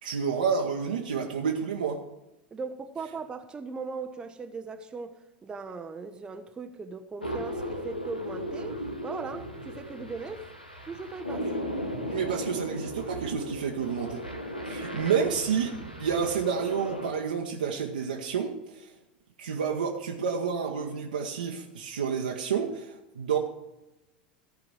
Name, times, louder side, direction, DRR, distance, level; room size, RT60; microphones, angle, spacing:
voice 1, 0.0-2.0 12.1-14.2 14.7-15.7 16.0-18.5 18.8-18.9 19.4-23.4, right 6 dB, 70° right, 1.0 m, -29 dB
voice 2, 2.5-10.5 10.9-11.5, right 4 dB, 15° right, 0.7 m, -39 dB
sound 1, 7.2-17.1, equal, 85° left, 1.3 m, -36 dB
14.0 x 5.0 x 7.6 m
figure-of-eight pair, 80°, 5 cm